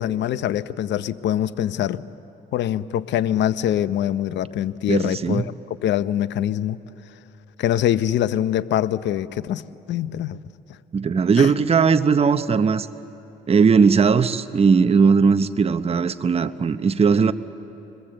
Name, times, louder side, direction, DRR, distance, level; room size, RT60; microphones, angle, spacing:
voice 1, 0.0-2.0 2.5-5.5 5.8-6.8 7.6-9.6 9.9-10.4 11.4-11.5, left 11 dB, 70° left, 14 dB, 0.7 m, -23 dB
voice 2, 4.9-5.4 10.9-12.9 13.5-17.3, right 5 dB, 30° right, 11 dB, 0.8 m, -18 dB
26.5 x 21.5 x 7.7 m, 2.8 s
supercardioid pair, 75°, 19 cm